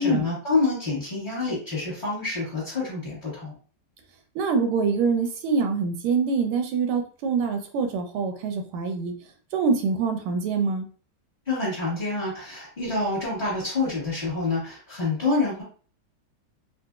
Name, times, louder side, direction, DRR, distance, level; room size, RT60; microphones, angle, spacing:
voice 1, 0.0-3.5 11.5-15.6, left 3 dB, 25° left, -9 dB, 1.5 m, -27 dB
voice 2, 4.3-9.1 9.5-10.9, right 4 dB, 90° right, 6 dB, 1.5 m, -25 dB
3.8 x 2.6 x 2.3 m, 0.40 s
omnidirectional pair, 2.3 m